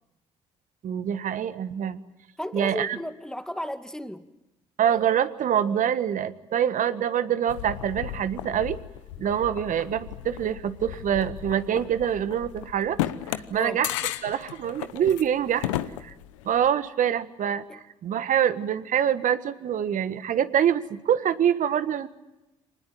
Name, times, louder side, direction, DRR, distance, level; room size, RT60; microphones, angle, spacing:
voice 1, 0.8-2.0 2.5-3.0 4.8-8.8 9.2-13.0 13.3-13.9 14.2-15.7 16.0-16.1 16.4-17.6 18.0-22.1, right 9 dB, 55° right, 1.5 m, -25 dB
voice 2, 2.4-4.3 13.5-13.8 17.7-17.8, equal, 5° left, 2.2 m, -34 dB
sound 1, 7.5-16.7, left 13 dB, 85° left, 0.9 m, -35 dB
25.5 x 20.0 x 9.3 m
hypercardioid pair, 55°, 16 cm